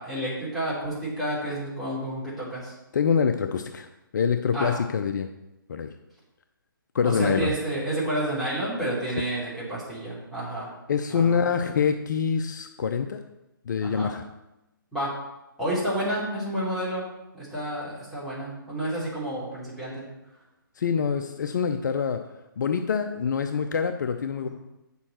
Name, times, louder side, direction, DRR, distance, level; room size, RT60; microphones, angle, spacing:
voice 1, 0.0-2.7 4.5-4.7 7.0-10.7 11.1-11.5 13.8-14.1 14.9-15.1 15.6-17.0 17.3-20.0 24.4-24.5, right 1 dB, ahead, -11 dB, 3.7 m, -30 dB
voice 2, 2.9-5.3 5.7-5.9 6.9-7.5 10.9-13.2 13.6-14.2 20.8-22.2 22.6-24.5, left 6 dB, 55° left, 7 dB, 0.6 m, -25 dB
8.7 x 7.0 x 4.4 m, 0.94 s
figure-of-eight pair, 145°, 12 cm